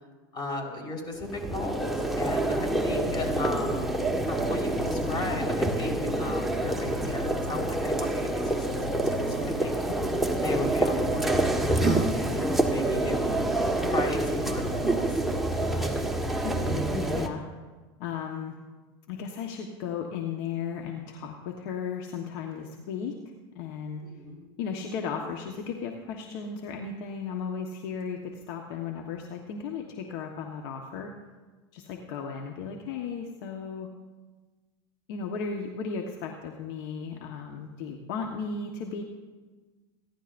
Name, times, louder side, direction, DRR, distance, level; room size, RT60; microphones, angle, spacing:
voice 1, 0.3-4.0 4.3-8.8 9.0-9.8 10.4-13.2 13.5-15.1 24.1-24.4, left 2 dB, 35° left, 1 dB, 4.4 m, -35 dB
sound 1, 1.2-17.3, right 1 dB, ahead, 1.5 m, -27 dB
voice 2, 9.9-10.2 15.7-15.9 16.4-17.4 18.0-18.5 19.1-23.2 23.5-24.0 24.6-31.1 31.7-33.9 35.1-39.0, left 6 dB, 70° left, 2 dB, 1.3 m, -35 dB
29.5 x 11.0 x 2.6 m, 1.3 s
hypercardioid pair, 100°, 13 cm